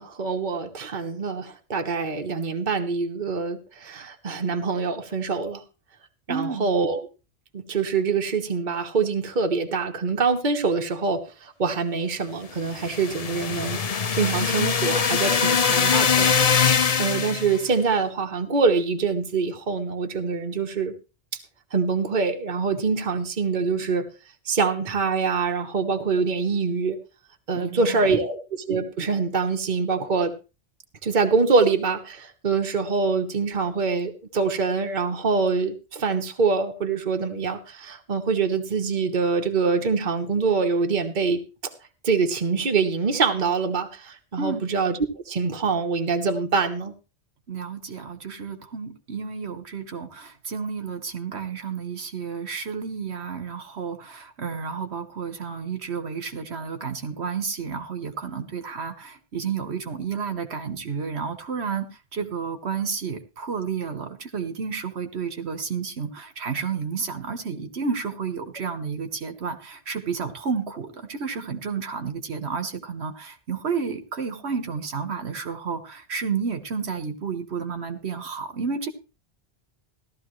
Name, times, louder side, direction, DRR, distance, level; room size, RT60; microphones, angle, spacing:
voice 1, 0.0-5.6 6.3-7.0 7.5-13.8 14.1-16.4 17.0-20.9 21.7-24.1 24.5-27.0 27.5-28.4 28.7-30.4 31.0-41.4 42.0-45.0 45.3-46.9, right 4 dB, 45° right, 5 dB, 1.3 m, -24 dB
voice 2, 6.3-6.7 27.5-28.1 44.4-44.6 47.5-61.9 62.1-78.9, right 6 dB, 70° right, 8 dB, 1.4 m, -31 dB
sound 1, 12.6-17.6, left 6 dB, 40° left, 0.6 m, -22 dB
15.0 x 12.5 x 3.1 m, 0.31 s
omnidirectional pair, 1.1 m